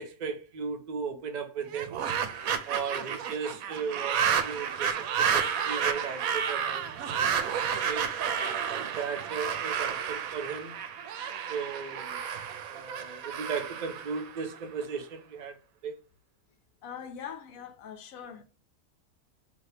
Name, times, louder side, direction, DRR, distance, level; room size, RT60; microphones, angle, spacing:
voice 1, 0.0-2.0 2.6-8.1 8.6-10.8 11.5-12.2 12.6-15.6 15.8-15.9, right 6 dB, 45° right, 0.6 m, -36 dB
sound 1, 1.7-14.8, right 7 dB, 80° right, 1.0 m, -31 dB
voice 2, 16.8-18.4, left 8 dB, 80° left, 1.1 m, -42 dB
2.8 x 2.8 x 3.1 m
omnidirectional pair, 1.5 m